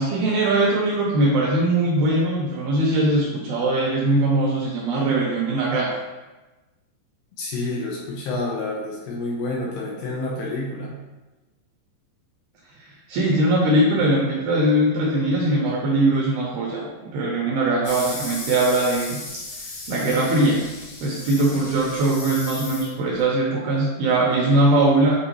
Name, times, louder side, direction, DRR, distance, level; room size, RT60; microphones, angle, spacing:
voice 1, 0.0-6.0 12.8-19.2 19.6-20.7 21.0-25.1, right 1 dB, 80° right, -3 dB, 2.3 m, -21 dB
voice 2, 7.4-11.0, left 2 dB, 75° left, -3 dB, 2.6 m, -29 dB
sound 1, 17.8-23.2, left 3 dB, 55° left, 2.4 m, -35 dB
8.7 x 4.2 x 3.1 m, 1.1 s
omnidirectional pair, 5.3 m